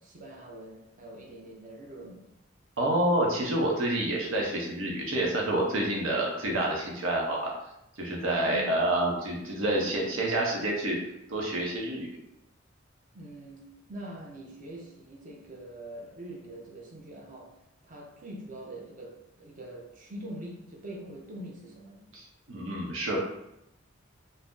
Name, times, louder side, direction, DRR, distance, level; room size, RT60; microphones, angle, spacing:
voice 1, 0.0-2.3 8.2-8.8 13.1-17.6 17.8-22.1, right 1 dB, 40° right, -1 dB, 0.6 m, -44 dB
voice 2, 2.8-7.5 8.0-11.0 11.3-12.2 22.1-23.2, right 1 dB, 90° right, -2 dB, 0.7 m, -28 dB
2.7 x 2.0 x 3.5 m, 0.83 s
head